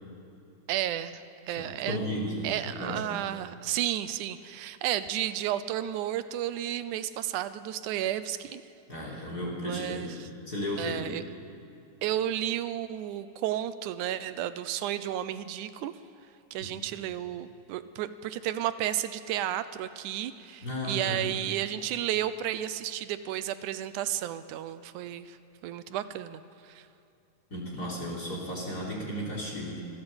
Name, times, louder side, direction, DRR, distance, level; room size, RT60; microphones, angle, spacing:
voice 1, 0.7-2.0 2.4-8.6 9.6-10.1 10.8-11.2 12.0-15.9 16.5-25.4 25.6-26.9, right 12 dB, 80° right, 13 dB, 2.2 m, -32 dB
voice 2, 1.5-3.0 8.9-11.2 16.6-16.7 20.6-21.3 27.5-29.8, equal, 30° left, -3 dB, 4.0 m, -34 dB
25.5 x 15.5 x 8.0 m, 2.6 s
omnidirectional pair, 3.5 m